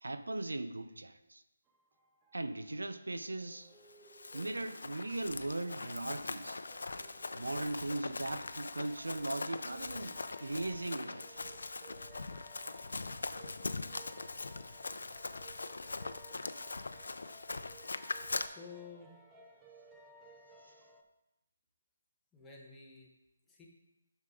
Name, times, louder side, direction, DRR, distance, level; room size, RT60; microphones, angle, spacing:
voice 1, 0.0-1.4 2.3-3.7 4.3-6.6 7.3-11.5 20.6-20.7, right 2 dB, 90° right, 11 dB, 0.6 m, -39 dB
sound 1, 1.7-21.0, right 1 dB, 15° right, 0.7 m, -59 dB
Run, 3.9-18.5, left 3 dB, 75° left, 0.5 m, -42 dB
voice 2, 18.4-19.1 22.3-23.1 23.5-23.7, left 5 dB, 5° left, -4 dB, 1.3 m, -51 dB
7.7 x 6.1 x 3.9 m, 0.93 s
figure-of-eight pair, 155°, 0 cm